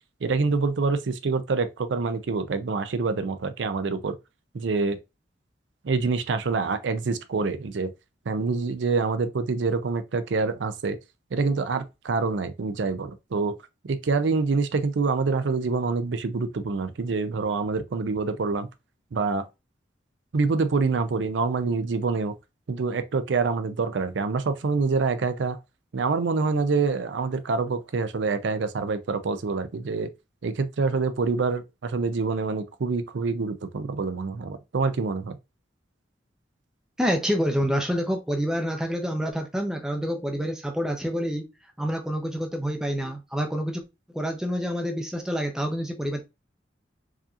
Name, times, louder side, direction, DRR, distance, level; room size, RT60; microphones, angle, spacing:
voice 1, 0.2-4.2 4.5-5.0 5.8-7.9 8.3-11.0 11.3-13.5 13.9-18.7 19.1-19.5 20.3-22.3 22.7-25.6 25.9-30.1 30.4-35.4, right 4 dB, 80° right, 0.5 m, -26 dB
voice 2, 37.0-41.4 41.8-43.8 44.1-46.2, equal, 5° right, 0.6 m, -27 dB
4.8 x 2.8 x 2.4 m
head